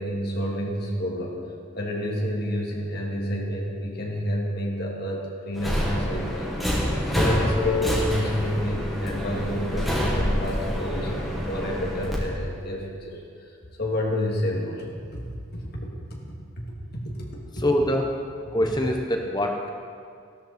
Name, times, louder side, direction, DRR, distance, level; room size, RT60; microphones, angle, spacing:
voice 1, 0.0-1.4 1.8-6.8 7.1-13.2 13.8-14.9 15.1-15.2 15.5-16.2 17.2-17.3 17.6-17.7, equal, 50° left, -2 dB, 2.4 m, -29 dB
Subway metro underground, 5.5-12.2, equal, ahead, 1.9 m, -26 dB
voice 2, 17.5-18.1 18.5-19.7, left 1 dB, 20° left, 2 dB, 0.9 m, -24 dB
14.5 x 13.0 x 4.3 m, 2.2 s
head